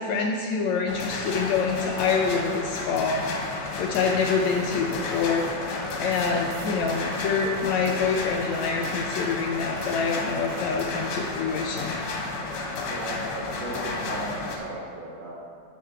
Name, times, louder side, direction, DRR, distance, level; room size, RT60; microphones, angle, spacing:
voice 1, 0.0-5.5 6.0-12.0, left 5 dB, 80° left, 1 dB, 1.6 m, -26 dB
sound 1, 0.9-14.6, left 3 dB, 60° left, 2.0 m, -32 dB
sound 2, 3.8-10.8, right 6 dB, 80° right, 1.4 m, -44 dB
voice 2, 6.2-6.5 12.8-15.4, right 2 dB, 65° right, -3 dB, 1.6 m, -36 dB
12.5 x 6.6 x 4.4 m, 2.2 s
omnidirectional pair, 3.9 m